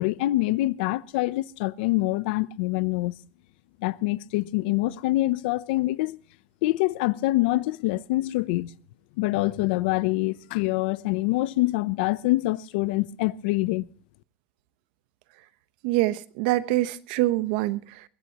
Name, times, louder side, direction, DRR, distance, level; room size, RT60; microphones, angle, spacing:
voice 1, 0.0-3.1 3.8-6.2 6.6-8.7 9.2-13.9, left 18 dB, 80° left, 0.6 m, -25 dB
voice 2, 15.8-18.0, right 17 dB, 70° right, 1.0 m, -25 dB
21.5 x 16.5 x 3.0 m
cardioid pair, 160°, 5 cm